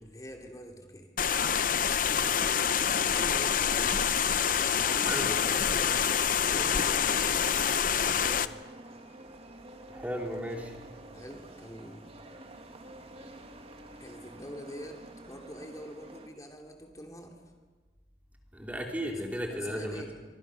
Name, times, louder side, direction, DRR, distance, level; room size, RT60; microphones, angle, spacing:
voice 1, 0.0-1.1 3.0-4.1 4.8-8.6 11.1-12.1 14.0-17.4 19.0-19.2 19.5-20.1, equal, 20° left, 2 dB, 3.0 m, -45 dB
sound 1, 1.2-8.5, left 7 dB, 50° left, 0.8 m, -26 dB
voice 2, 5.1-5.5 9.9-10.7 18.5-20.0, equal, 10° right, 1 dB, 3.0 m, -35 dB
sound 2, 8.1-16.3, right 1 dB, 35° right, 2.4 m, -49 dB
26.5 x 25.0 x 6.4 m, 1.4 s
head